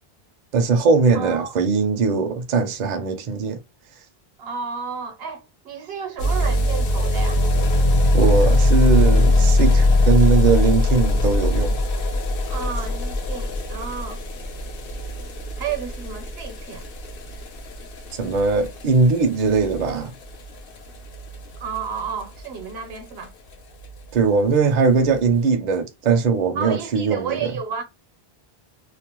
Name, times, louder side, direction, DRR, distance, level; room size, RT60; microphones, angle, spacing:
voice 1, 0.5-3.6 8.1-11.8 18.1-20.1 24.1-27.5, right 4 dB, 55° right, 0.5 m, -20 dB
voice 2, 1.1-1.5 4.4-7.4 12.5-14.2 15.6-16.9 21.6-23.3 26.6-27.8, right 6 dB, 75° right, 0.9 m, -31 dB
sound 1, 6.2-23.0 23.2-23.3 23.5-23.6 23.8-23.9 24.2-24.3 25.0-25.1, left 2 dB, 70° left, 0.8 m, -21 dB
2.4 x 2.0 x 2.9 m
omnidirectional pair, 1.0 m